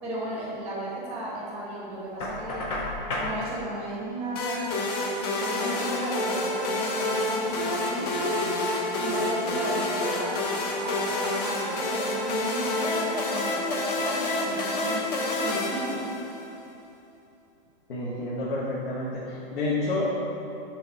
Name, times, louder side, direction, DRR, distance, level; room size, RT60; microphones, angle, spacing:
voice 1, 0.0-2.7 3.2-4.9 5.4-8.1 8.9-10.4 10.8-16.0, right 1 dB, 5° right, -5 dB, 0.7 m, -35 dB
Knock, 2.2-3.4, left 1 dB, 15° left, 0.3 m, -31 dB
sound 1, 4.4-16.5, left 2 dB, 40° left, 0.9 m, -28 dB
voice 2, 17.9-20.2, left 2 dB, 75° left, -7 dB, 1.3 m, -29 dB
6.3 x 3.0 x 5.4 m, 2.7 s
hypercardioid pair, 160°, 29 cm